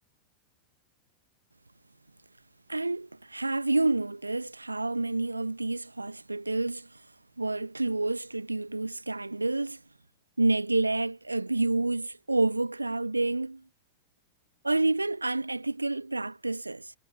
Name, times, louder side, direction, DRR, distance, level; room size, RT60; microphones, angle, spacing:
voice 1, 2.7-7.0 7.4-9.8 10.4-13.6 14.6-16.9, right 2 dB, 85° right, 2.4 m, -29 dB
figure-of-eight pair, 90°, 0 cm